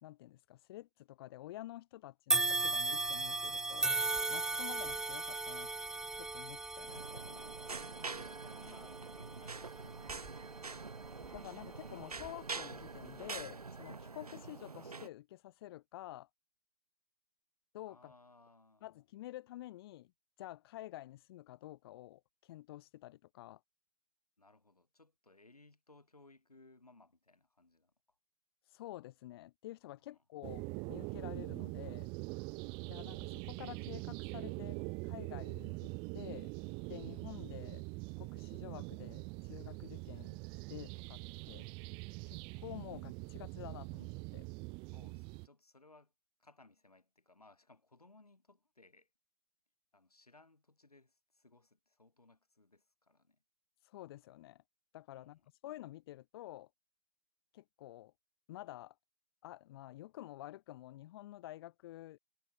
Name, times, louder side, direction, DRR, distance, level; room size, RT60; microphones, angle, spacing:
voice 1, 0.0-4.0 4.3-5.7 6.2-7.4 11.3-16.3 17.7-18.1 18.8-20.1 20.4-23.6 28.6-32.1 32.9-36.5 36.9-37.8 38.2-41.2 41.5-41.7 42.2-44.4 53.8-54.6 54.9-56.7 57.5-58.1 58.5-58.9 59.4-62.2, left 15 dB, 40° left, 3.1 m, -50 dB
sound 1, 2.3-11.6 12.1-12.3 13.3-13.4, right 3 dB, 5° right, 0.5 m, -37 dB
voice 2, 3.1-3.5 4.5-4.7 7.9-10.7 17.9-18.9 24.4-27.9 30.1-30.2 32.6-32.9 41.6-42.2 44.9-46.1 46.4-49.1 49.9-53.4 55.1-55.4, left 2 dB, 90° left, 7.6 m, -63 dB
sound 2, 6.9-15.1, right 4 dB, 85° right, 0.9 m, -45 dB
sound 3, 30.4-45.5, right 30 dB, 25° right, 1.4 m, -43 dB
figure-of-eight pair, 130°, 19 cm